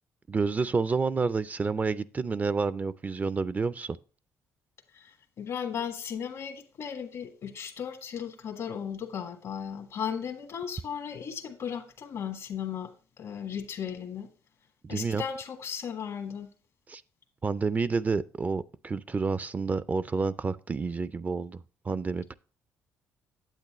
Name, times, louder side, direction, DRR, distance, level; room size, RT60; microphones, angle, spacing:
voice 1, 0.3-4.0 14.8-15.2 16.9-17.0 17.4-22.3, right 4 dB, 30° right, 0.4 m, -29 dB
voice 2, 4.9-12.9 13.2-14.3 14.9-16.5, left 7 dB, 70° left, 1.3 m, -36 dB
9.1 x 8.0 x 3.0 m
supercardioid pair, 75°, 6 cm